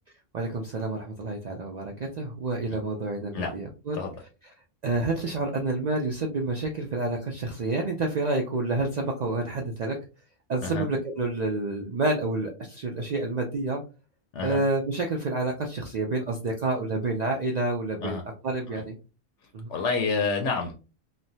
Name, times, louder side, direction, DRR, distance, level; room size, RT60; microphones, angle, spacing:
voice 1, 0.3-4.0 4.8-10.0 10.5-13.8 14.4-18.2 18.4-19.0 19.5-19.7, right 2 dB, 85° right, 2 dB, 0.3 m, -29 dB
voice 2, 19.7-20.7, left 4 dB, 75° left, 4 dB, 0.9 m, -28 dB
3.1 x 2.1 x 2.6 m, 0.32 s
omnidirectional pair, 1.3 m